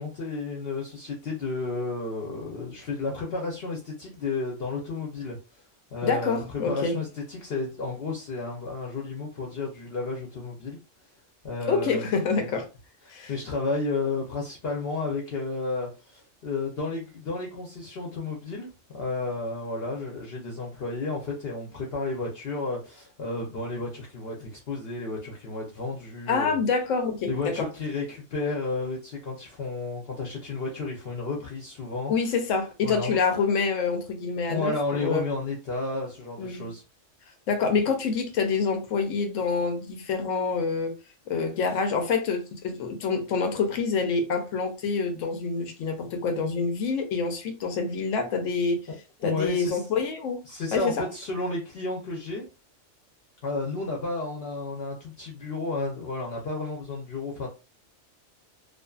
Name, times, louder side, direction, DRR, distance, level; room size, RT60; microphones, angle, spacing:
voice 1, 0.0-5.4 5.9-6.4 6.7-10.8 11.4-12.5 13.0-26.6 27.3-32.1 32.8-33.2 34.5-36.8 49.2-49.8 50.5-52.5 53.4-57.5, left 3 dB, 60° left, 0.8 m, -32 dB
voice 2, 6.0-7.0 11.7-12.7 13.1-13.3 26.3-27.7 32.1-35.2 36.4-36.7 37.5-40.9 41.3-48.9 49.2-50.4 50.7-51.1, left 5 dB, 80° left, 1.0 m, -27 dB
2.5 x 2.4 x 2.3 m
omnidirectional pair, 1.3 m